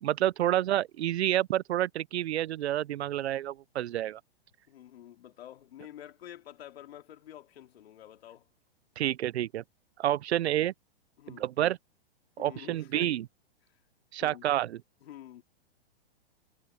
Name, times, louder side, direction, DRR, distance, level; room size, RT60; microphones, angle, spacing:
voice 1, 0.0-4.2 9.0-9.6 10.0-10.7 11.3-11.8 12.4-13.2 14.1-14.8, right 12 dB, 90° right, 0.6 m, -29 dB
voice 2, 4.7-8.5 11.2-11.5 12.4-13.2 14.2-14.5 15.0-15.4, left 11 dB, 70° left, 2.9 m, -48 dB
hypercardioid pair, 145°, 32 cm